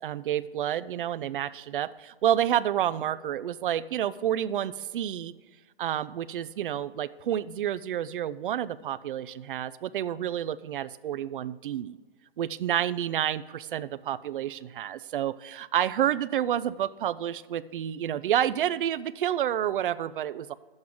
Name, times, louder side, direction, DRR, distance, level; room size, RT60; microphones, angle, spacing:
voice 1, 0.0-5.3 5.8-12.0 12.4-20.5, right 11 dB, 60° right, 16 dB, 0.5 m, -29 dB
11.5 x 7.9 x 3.7 m, 1.4 s
hypercardioid pair, 150°, 30 cm